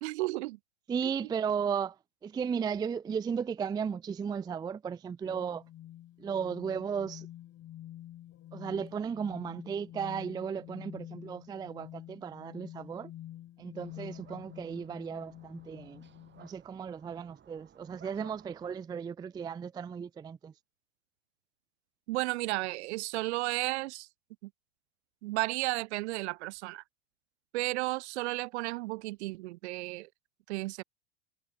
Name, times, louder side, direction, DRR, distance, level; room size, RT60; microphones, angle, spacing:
voice 1, 0.0-0.6 22.1-24.1 24.4-24.5 25.2-26.8 27.5-30.1 30.5-30.8, right 21 dB, 60° right, 1.3 m, -33 dB
voice 2, 0.9-5.6 6.2-7.3 8.5-13.1 13.6-16.0 16.4-20.5, right 7 dB, 10° right, 0.4 m, -35 dB
sound 1, 5.3-16.5, left 13 dB, 40° left, 3.5 m, -48 dB
sound 2, 13.8-18.8, right 8 dB, 30° right, 5.8 m, -58 dB
hypercardioid pair, 85°, 37 cm